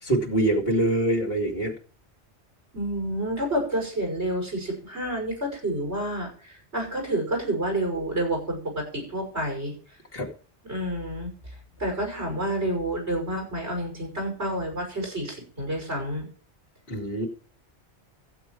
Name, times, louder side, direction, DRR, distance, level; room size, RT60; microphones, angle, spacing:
voice 1, 0.0-1.7 10.1-10.3 16.9-17.3, right 1 dB, 55° left, 1 dB, 2.9 m, -24 dB
voice 2, 2.7-9.7 10.7-11.3 11.8-16.3, right 1 dB, 75° right, 1 dB, 6.4 m, -29 dB
15.0 x 7.8 x 4.7 m, 0.43 s
omnidirectional pair, 1.1 m